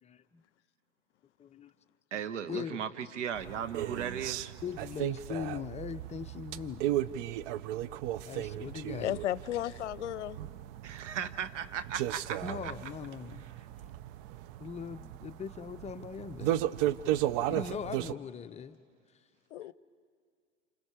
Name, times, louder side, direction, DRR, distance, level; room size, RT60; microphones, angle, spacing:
voice 1, 0.0-0.4 1.4-1.7 2.5-2.8 4.6-6.8 8.3-9.1 12.4-13.4 14.6-16.7 17.5-18.8, left 6 dB, 20° left, 10 dB, 0.7 m, -40 dB
voice 2, 2.1-4.5 10.8-12.4 12.6-12.7, right 8 dB, 70° right, 10 dB, 1.3 m, -36 dB
sound 1, 3.3-18.1, right 13 dB, 50° right, 0.7 m, -35 dB
voice 3, 9.0-10.4 19.5-19.7, left 12 dB, 70° left, 19 dB, 0.7 m, -34 dB
29.5 x 28.0 x 5.0 m, 2.2 s
hypercardioid pair, 90°, 37 cm